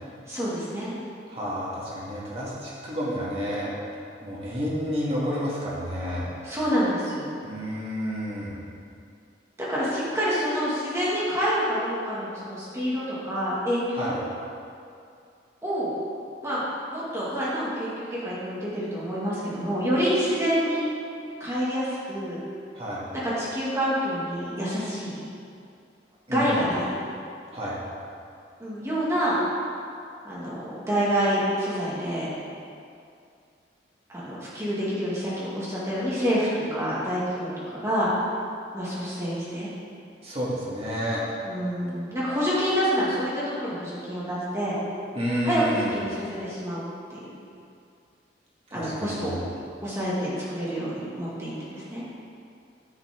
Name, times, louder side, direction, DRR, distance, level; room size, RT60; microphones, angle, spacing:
voice 1, 0.3-1.0 6.4-7.3 9.6-14.2 15.6-15.9 16.4-16.6 16.9-20.8 21.4-22.4 23.1-25.2 26.3-27.0 28.6-29.4 30.2-32.3 34.1-38.1 38.7-39.7 41.4-44.8 45.4-45.6 45.9-46.8 47.1-47.3 48.7-49.4 49.8-52.0, equal, 15° right, -9 dB, 2.4 m, -27 dB
voice 2, 1.3-3.7 4.2-6.3 7.4-8.6 13.9-14.2 22.7-23.1 26.3-26.6 27.5-27.8 40.2-41.2 45.1-45.9 48.7-49.4, equal, 35° right, -7 dB, 2.3 m, -30 dB
10.5 x 5.9 x 5.3 m, 2.4 s
head